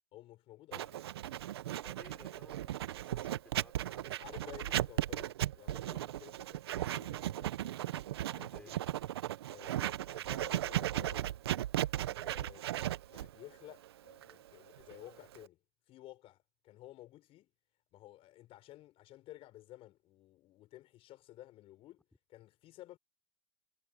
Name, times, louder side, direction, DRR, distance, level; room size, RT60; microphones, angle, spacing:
voice 1, 0.1-0.8 4.2-7.5 8.3-8.8 9.5-11.4 12.2-15.6 15.9-17.5 17.9-22.0 22.3-23.0, left 15 dB, 45° left, 6.6 m, -54 dB
Writing, 0.7-15.5, right 13 dB, 80° right, 1.0 m, -36 dB
voice 2, 1.8-4.6 8.5-8.8, left 2 dB, 10° left, 5.7 m, -59 dB
hypercardioid pair, 100°, 13 cm